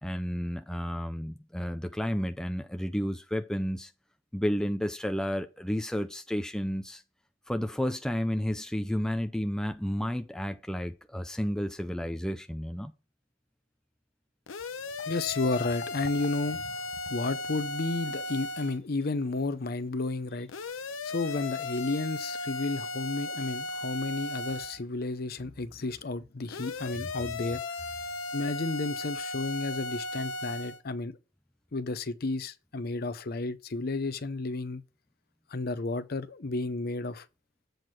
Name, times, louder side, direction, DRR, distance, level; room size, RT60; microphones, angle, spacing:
voice 1, 0.0-3.9 4.3-7.0 7.5-12.9, equal, 5° left, 0.4 m, -31 dB
sound 1, 14.5-18.8 20.5-24.8 26.5-30.8, left 2 dB, 85° left, 0.8 m, -36 dB
voice 2, 15.0-20.5 21.0-27.6 28.3-31.2 31.7-34.8 35.5-37.3, left 3 dB, 50° left, 0.6 m, -32 dB
7.9 x 4.4 x 4.7 m
head